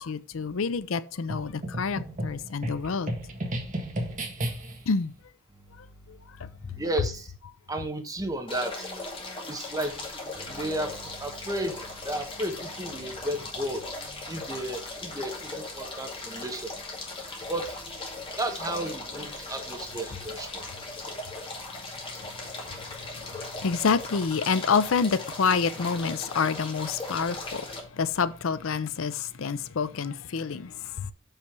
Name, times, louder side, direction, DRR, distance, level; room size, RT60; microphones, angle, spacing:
voice 1, 0.0-3.1 4.9-5.1 6.4-6.5 22.2-27.7 27.9-31.1, left 5 dB, 75° left, 0.5 m, -28 dB
sound 1, 1.3-4.9, right 1 dB, 40° right, 1.7 m, -33 dB
voice 2, 6.8-7.3 7.7-8.9 9.5-9.9 10.5-11.8 12.0-13.8 14.3-16.7 17.5-17.7 18.4-20.6, right 1 dB, 20° right, 1.3 m, -33 dB
sound 2, 8.5-27.8, left 2 dB, 25° left, 2.2 m, -38 dB
6.7 x 5.7 x 6.0 m
head